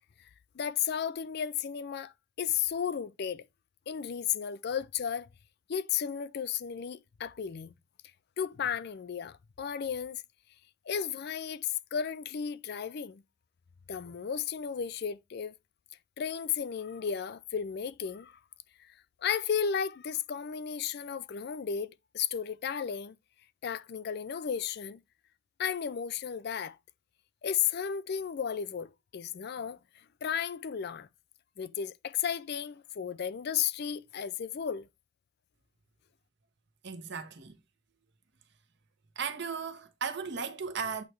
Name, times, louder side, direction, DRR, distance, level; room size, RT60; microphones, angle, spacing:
voice 1, 0.5-3.5 3.9-5.3 5.7-7.7 8.4-10.2 10.9-13.2 13.9-15.5 16.2-18.4 18.8-18.9 19.2-23.2 23.6-25.0 25.6-26.8 27.4-29.8 30.2-31.1 31.6-34.9, left 8 dB, 50° left, 0.4 m, -34 dB
voice 2, 36.8-37.5 39.2-41.0, right 6 dB, 55° right, 1.0 m, -36 dB
8.2 x 3.2 x 4.4 m
head